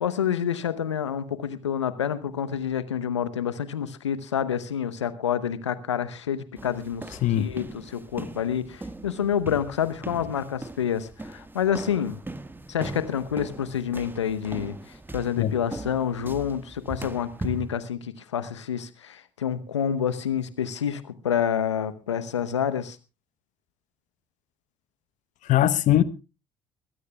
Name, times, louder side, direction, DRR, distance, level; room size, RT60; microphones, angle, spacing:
voice 1, 0.0-7.0 7.4-12.2 12.7-23.0, left 8 dB, 90° left, 0.9 m, -28 dB
sound 1, 6.6-17.8, right 2 dB, 15° right, 1.6 m, -40 dB
voice 2, 25.5-26.0, left 12 dB, 60° left, 1.0 m, -20 dB
22.5 x 16.0 x 2.3 m
hypercardioid pair, 50°, 15 cm